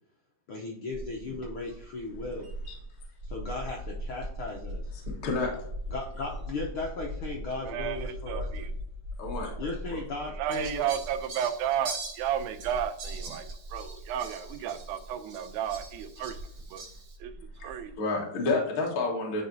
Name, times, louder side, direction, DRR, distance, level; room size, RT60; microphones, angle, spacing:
voice 1, 0.5-2.5 3.2-5.0 5.9-8.7 9.6-10.8, left 3 dB, 75° left, -2 dB, 1.2 m, -36 dB
sound 1, 0.9-17.9, equal, 35° right, 2.8 m, -41 dB
voice 2, 5.1-5.5 9.2-9.5 17.6-19.4, left 3 dB, 50° left, -1 dB, 2.0 m, -30 dB
voice 3, 7.7-8.7 10.4-16.4 16.7-16.8 17.2-17.3 17.6-18.0, right 9 dB, 80° right, 7 dB, 2.0 m, -33 dB
Fowl, 10.5-17.2, right 3 dB, 60° right, 2.6 m, -44 dB
10.5 x 4.4 x 2.7 m, 0.73 s
omnidirectional pair, 3.6 m